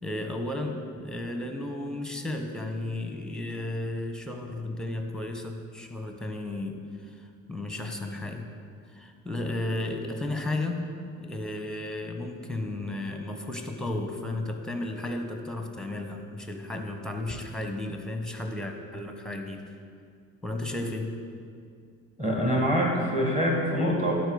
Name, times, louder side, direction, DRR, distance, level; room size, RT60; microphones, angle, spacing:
voice 1, 0.0-8.5 8.9-10.9 11.2-19.6 20.4-21.2, left 2 dB, ahead, 4 dB, 1.1 m, -34 dB
voice 2, 22.2-24.1, equal, 20° right, -2 dB, 2.0 m, -25 dB
11.5 x 4.6 x 4.9 m, 2.3 s
hypercardioid pair, 50°, 41 cm